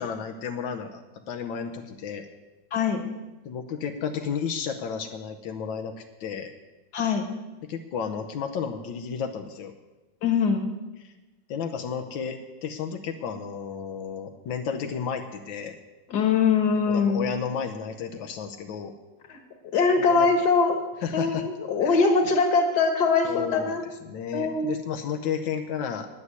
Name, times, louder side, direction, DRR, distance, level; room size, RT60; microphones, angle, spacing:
voice 1, 0.0-2.3 3.4-6.5 7.7-9.7 11.0-11.1 11.5-15.7 16.9-18.9 20.0-20.3 21.0-21.5 21.8-22.3 23.2-23.8 24.0-26.1, left 7 dB, 90° left, 4 dB, 1.6 m, -32 dB
voice 2, 2.7-3.0 6.9-7.2 10.2-10.6 16.1-17.2 19.3-19.4 19.7-20.8 21.1-23.8 24.3-24.8, left 5 dB, 60° left, 4 dB, 2.0 m, -22 dB
9.7 x 9.5 x 8.1 m, 1.1 s
omnidirectional pair, 2.0 m